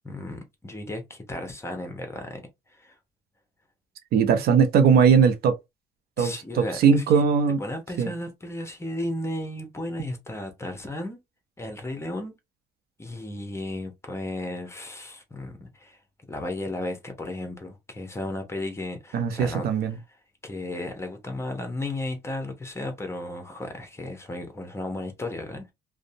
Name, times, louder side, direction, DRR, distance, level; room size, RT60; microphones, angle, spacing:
voice 1, 0.0-2.4 2.7-2.9 6.2-7.2 7.6-11.2 11.6-12.3 13.0-16.0 16.3-19.7 20.4-25.7, left 1 dB, 15° left, 0.8 m, -34 dB
voice 2, 4.1-5.5 6.2-7.6 8.0-8.1 19.1-20.0, right 6 dB, 65° right, 0.6 m, -20 dB
2.6 x 2.1 x 2.7 m
cardioid pair, 110°, 17 cm